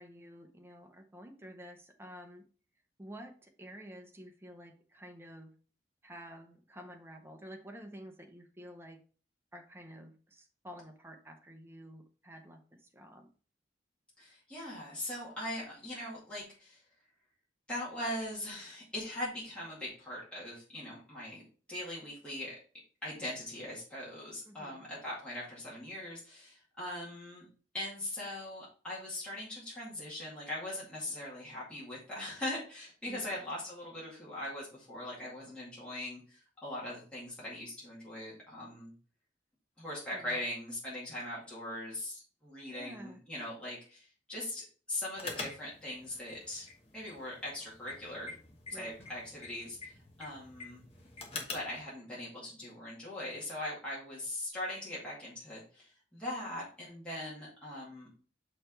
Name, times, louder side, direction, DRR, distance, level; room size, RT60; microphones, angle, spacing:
voice 1, 0.0-2.4 3.0-5.5 6.0-9.0 9.5-13.3 24.5-24.8 33.1-33.3 40.1-40.4 42.7-43.2 48.7-48.9, equal, 15° right, 3 dB, 0.8 m, -50 dB
voice 2, 14.2-16.8 17.7-22.6 23.0-27.5 27.7-38.9 39.8-46.7 46.9-48.3 48.7-50.9 51.3-58.1, left 1 dB, 5° left, -8 dB, 2.1 m, -41 dB
sound 1, 45.1-51.8, left 3 dB, 35° left, 1.2 m, -46 dB
6.4 x 3.3 x 4.5 m, 0.40 s
head